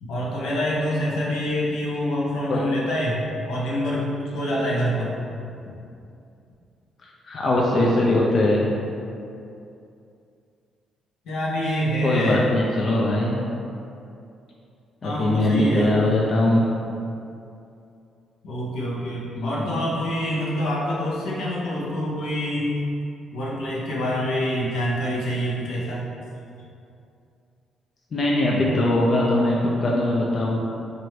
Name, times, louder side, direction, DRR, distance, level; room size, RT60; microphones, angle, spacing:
voice 1, 0.0-4.1 4.3-5.1 11.2-12.4 15.0-16.2 18.4-22.7 23.3-26.1, equal, 80° left, -5 dB, 0.8 m, -26 dB
voice 2, 7.3-8.6 12.0-13.4 15.0-16.6 19.3-19.8 28.1-30.6, left 1 dB, 45° left, -4 dB, 0.5 m, -21 dB
3.1 x 2.6 x 4.3 m, 2.6 s
cardioid pair, 90°, 0 cm